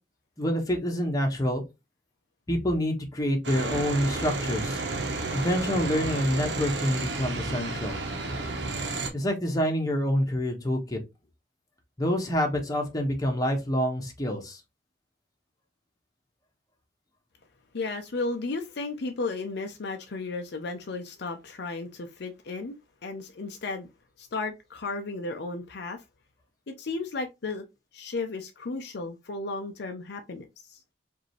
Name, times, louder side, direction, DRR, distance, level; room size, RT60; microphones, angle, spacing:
voice 1, 0.4-1.6 2.5-4.8 5.3-8.0 9.1-11.0 12.0-14.6, equal, 20° left, 1.2 m, -27 dB
sound 1, 3.4-9.1, right 3 dB, 70° right, 1.0 m, -31 dB
voice 2, 17.7-23.9 24.2-26.0 26.7-27.6 27.9-30.4 30.7-30.8, left 3 dB, 65° left, 0.6 m, -34 dB
4.9 x 2.7 x 3.2 m
head